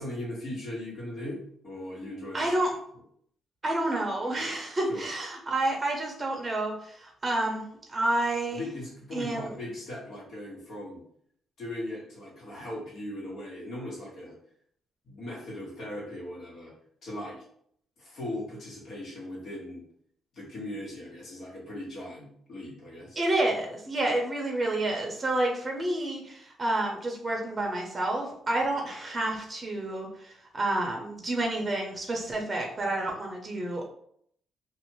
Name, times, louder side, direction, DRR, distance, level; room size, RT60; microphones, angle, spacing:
voice 1, 0.0-1.4 1.6-2.5 4.9-5.0 8.5-11.0 11.6-14.3 15.0-16.7 17.0-17.4 18.0-19.8 20.3-23.2, left 1 dB, 60° left, -5 dB, 1.5 m, -38 dB
voice 2, 2.3-2.7 3.6-7.6 7.9-8.6 9.1-9.5 23.2-33.9, right 2 dB, 25° right, 0 dB, 0.7 m, -29 dB
2.6 x 2.4 x 3.0 m, 0.66 s
cardioid pair, 90°, 0 cm